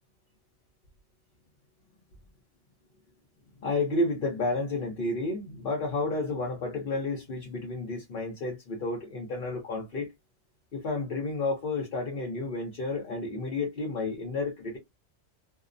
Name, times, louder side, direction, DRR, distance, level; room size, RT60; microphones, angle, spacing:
voice 1, 3.6-10.1 10.7-14.8, left 2 dB, 50° left, 0.8 m, -31 dB
2.7 x 2.0 x 2.5 m
omnidirectional pair, 1.4 m